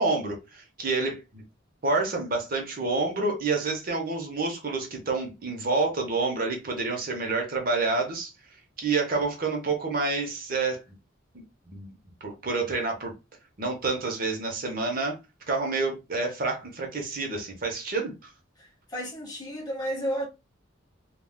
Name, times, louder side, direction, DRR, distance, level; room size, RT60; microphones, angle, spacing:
voice 1, 0.0-1.4 1.8-8.3 8.8-10.8 11.7-11.9 12.2-13.1 13.6-15.2 15.5-18.3, right 3 dB, 45° right, 0.7 m, -28 dB
voice 2, 18.6-20.3, equal, 20° left, 1.0 m, -32 dB
3.5 x 2.3 x 2.2 m
head